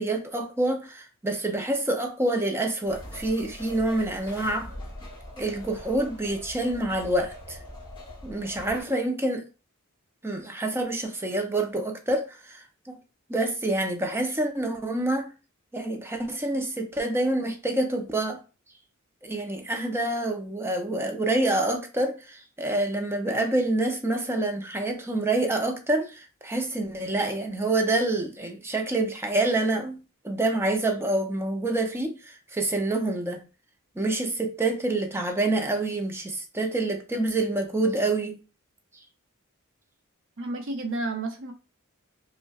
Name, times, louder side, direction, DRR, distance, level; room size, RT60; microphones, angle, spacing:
voice 1, 0.0-4.7 5.4-7.6 8.2-9.5 10.2-13.0 13.3-15.3 15.7-18.4 19.2-30.0 30.2-33.4 34.0-38.4, right 2 dB, 10° right, 0.5 m, -27 dB
sound 1, 2.8-8.8, left 1 dB, 20° left, 1.1 m, -42 dB
voice 2, 40.4-41.5, right 2 dB, 60° right, 0.8 m, -31 dB
5.3 x 2.1 x 2.3 m
head